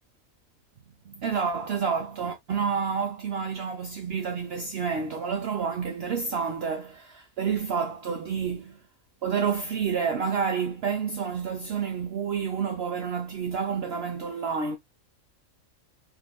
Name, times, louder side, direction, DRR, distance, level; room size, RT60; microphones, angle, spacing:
voice 1, 1.1-8.8 9.2-14.8, right 6 dB, 65° right, 0.6 m, -29 dB
3.9 x 2.6 x 2.2 m
omnidirectional pair, 1.4 m